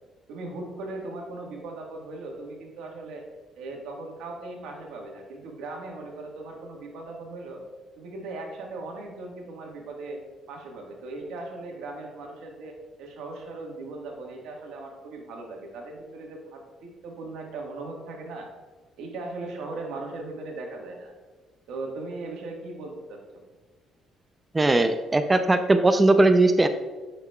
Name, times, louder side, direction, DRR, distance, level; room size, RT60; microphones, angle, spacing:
voice 1, 0.3-3.2 3.5-7.6 7.9-10.2 10.5-18.5 19.0-21.1 21.7-23.2, right 2 dB, 85° right, 1 dB, 1.4 m, -38 dB
voice 2, 24.5-26.7, right 2 dB, 20° right, 8 dB, 0.4 m, -19 dB
8.9 x 5.8 x 2.3 m, 1.3 s
cardioid pair, 100°, 0 cm